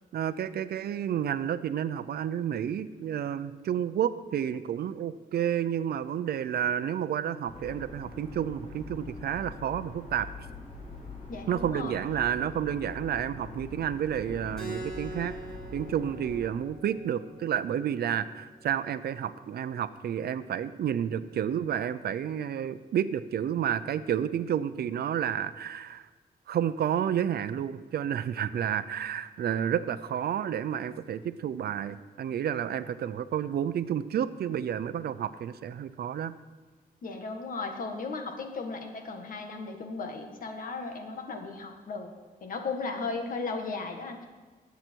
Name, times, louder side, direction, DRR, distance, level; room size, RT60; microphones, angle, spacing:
voice 1, 0.1-10.3 11.5-15.3 15.7-26.1 26.5-36.3, right 9 dB, 80° right, 13 dB, 0.6 m, -30 dB
sound 1, 7.4-16.4, left 3 dB, 40° left, 3.4 m, -44 dB
voice 2, 11.3-12.0 37.0-42.1 42.4-44.3, left 4 dB, 60° left, 4 dB, 1.7 m, -36 dB
Keyboard (musical), 14.6-19.7, right 2 dB, 5° left, 3.6 m, -45 dB
19.0 x 8.3 x 4.6 m, 1.4 s
wide cardioid pair, 165°, 16 cm